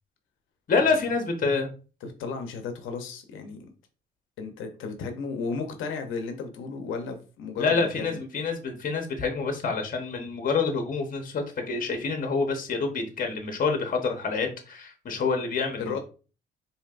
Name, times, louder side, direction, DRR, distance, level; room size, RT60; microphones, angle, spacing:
voice 1, 0.7-1.7 7.6-16.0, left 4 dB, 45° left, 5 dB, 1.0 m, -27 dB
voice 2, 2.0-3.6 4.4-8.2 15.8-16.0, left 4 dB, 85° left, 6 dB, 0.8 m, -34 dB
4.5 x 2.8 x 2.5 m, 0.35 s
cardioid pair, 90°, 20 cm